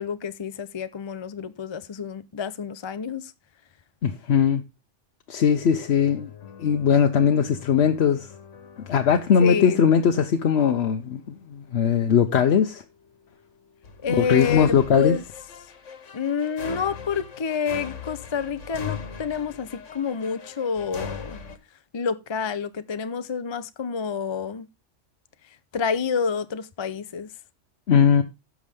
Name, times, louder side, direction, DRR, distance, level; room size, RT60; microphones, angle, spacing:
voice 1, 0.0-3.3 9.4-9.8 14.0-15.2 16.1-21.4 21.9-24.7 25.7-27.3, left 6 dB, 45° left, 0.4 m, -28 dB
voice 2, 4.0-4.6 5.3-6.3 6.6-8.3 8.9-12.8 14.2-15.2 27.9-28.2, left 7 dB, 65° left, 1.0 m, -20 dB
sound 1, 5.6-21.6, left 6 dB, 85° left, 1.6 m, -41 dB
16.0 x 6.2 x 3.3 m
omnidirectional pair, 1.2 m